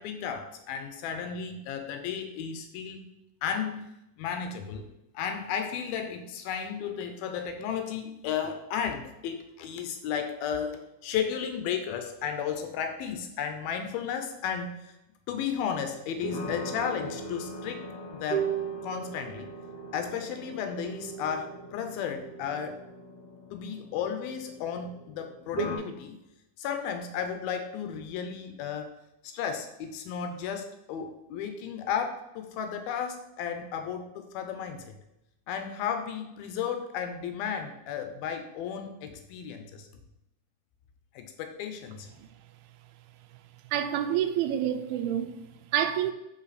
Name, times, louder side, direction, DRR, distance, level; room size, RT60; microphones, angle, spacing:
voice 1, 0.0-3.0 3.4-3.9 4.2-4.8 5.1-14.9 15.3-17.8 18.1-18.5 18.8-19.5 19.9-22.8 23.5-26.2 26.6-28.9 29.2-34.9 35.5-39.9 41.1-42.1, left 7 dB, 80° left, 2.2 m, -34 dB
sound 1, 16.2-25.8, right 4 dB, 45° left, 2.5 m, -37 dB
voice 2, 43.7-46.1, right 10 dB, 85° right, 2.2 m, -28 dB
7.3 x 5.6 x 4.1 m
omnidirectional pair, 5.0 m